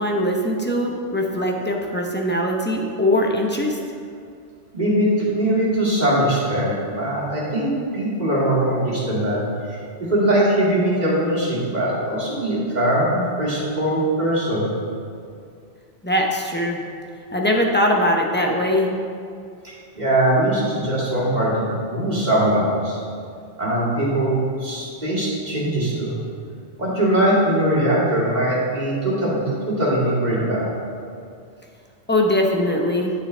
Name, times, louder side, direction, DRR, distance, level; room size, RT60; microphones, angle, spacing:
voice 1, 0.0-3.8 16.0-16.8 17.3-18.9 32.1-33.1, left 1 dB, 10° left, 0 dB, 0.6 m, -21 dB
voice 2, 4.7-9.4 9.7-14.7 19.6-23.0 23.6-26.1 26.8-30.7, right 1 dB, 35° right, -8 dB, 2.4 m, -21 dB
10.0 x 6.9 x 3.3 m, 2.3 s
omnidirectional pair, 1.2 m